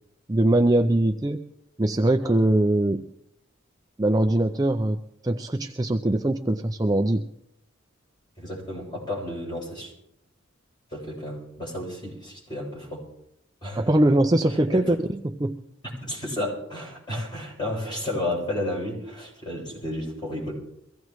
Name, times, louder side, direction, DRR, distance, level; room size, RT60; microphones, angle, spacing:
voice 1, 0.3-1.4 1.8-3.0 4.0-5.0 5.2-7.3 13.8-15.6, right 1 dB, 20° right, 5 dB, 0.5 m, -22 dB
voice 2, 8.4-9.9 10.9-13.0 13.6-13.8 14.7-14.9 16.0-20.5, left 1 dB, 20° left, -4 dB, 7.6 m, -32 dB
24.0 x 16.0 x 3.1 m, 0.79 s
head